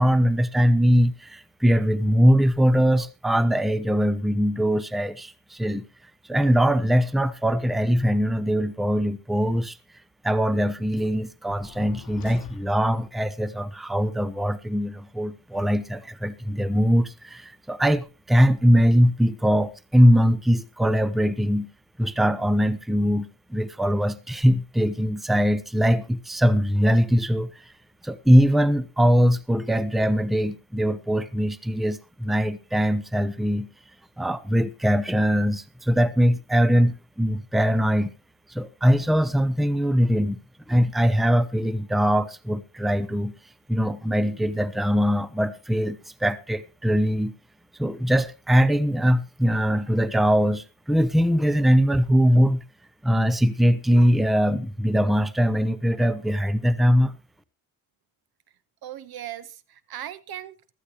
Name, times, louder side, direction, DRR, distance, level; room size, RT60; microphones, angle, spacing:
voice 1, 0.0-5.8 6.3-9.8 10.2-21.7 22.0-27.5 28.0-33.7 34.2-38.1 38.5-40.4 40.7-43.3 43.7-47.3 47.8-52.6 53.0-57.1, equal, ahead, 0.7 m, -21 dB
sound 1, 11.5-13.2, left 9 dB, 60° left, 1.0 m, -43 dB
voice 2, 58.8-60.7, right 11 dB, 75° right, 1.1 m, -38 dB
15.0 x 13.0 x 2.9 m
cardioid pair, 115°, 37 cm